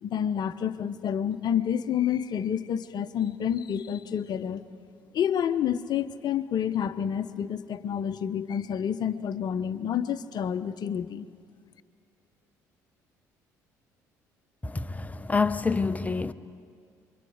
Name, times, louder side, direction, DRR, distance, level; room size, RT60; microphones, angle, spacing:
voice 1, 0.0-4.6 5.1-11.3, left 9 dB, 55° left, 0.9 m, -29 dB
voice 2, 14.6-16.3, left 4 dB, 15° left, 0.9 m, -27 dB
29.5 x 24.5 x 5.0 m
hypercardioid pair, 55°, 9 cm